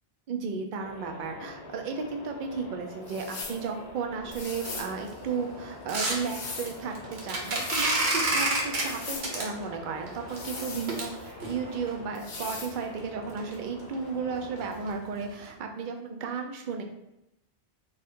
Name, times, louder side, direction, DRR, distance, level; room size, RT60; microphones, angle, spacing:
voice 1, 0.3-16.8, right 5 dB, 55° right, 3 dB, 0.7 m, -34 dB
sound 1, 0.8-14.9, left 2 dB, 80° left, 1.0 m, -45 dB
sound 2, 3.1-3.6 4.3-4.9 5.9-6.8 7.3-7.9 8.7-9.3 10.3-11.3 12.1-12.7, left 4 dB, 55° left, 0.8 m, -40 dB
sound 3, 4.5-11.9 12.5-12.6 13.0-13.1 13.4-13.5 13.8-13.9 14.3-14.6 14.9-15.0 15.5-15.6, right 2 dB, 75° right, 1.1 m, -31 dB
3.6 x 2.5 x 4.2 m, 0.86 s
omnidirectional pair, 1.1 m